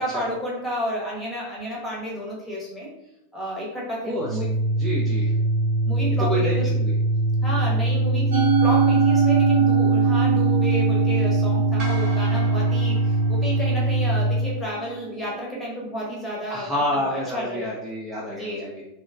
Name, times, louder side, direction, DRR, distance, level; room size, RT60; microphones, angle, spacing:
voice 1, 0.0-2.9 3.3-4.5 5.8-6.7 7.4-17.7 18.3-18.7, equal, 10° left, -5 dB, 0.9 m, -31 dB
Organ, 4.1-14.5, right 1 dB, 50° left, 0.9 m, -23 dB
voice 2, 4.1-4.4 4.8-5.3 6.3-6.9 16.5-18.8, equal, 10° right, -4 dB, 0.5 m, -28 dB
Musical instrument, 8.3-14.7, right 7 dB, 65° right, 0.6 m, -23 dB
sound 1, 11.8-14.2, right 2 dB, 35° right, 0.9 m, -39 dB
2.8 x 2.1 x 2.4 m, 0.87 s
figure-of-eight pair, 90°, 0 cm